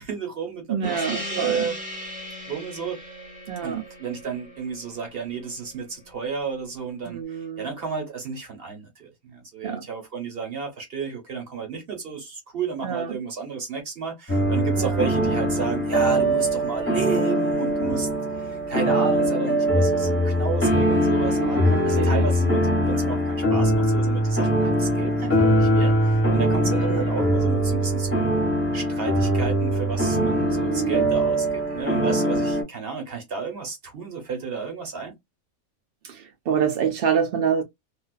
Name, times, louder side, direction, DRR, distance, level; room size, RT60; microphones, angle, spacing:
voice 1, 0.0-1.8 2.5-3.0 3.6-18.1 18.4-21.6 21.8-28.3 28.7-35.1, right 5 dB, 45° right, 1.0 m, -32 dB
voice 2, 0.7-1.7 3.5-3.8 7.1-7.7 9.6-9.8 12.8-13.2 14.8-15.1 21.3-22.3 26.6-27.2 30.1-31.1 36.0-37.6, right 7 dB, 65° right, 0.6 m, -27 dB
Gong, 0.8-5.8, equal, 10° right, 0.4 m, -37 dB
sound 1, 14.3-32.6, right 1 dB, 10° left, 0.8 m, -22 dB
2.4 x 2.3 x 2.3 m
omnidirectional pair, 1.5 m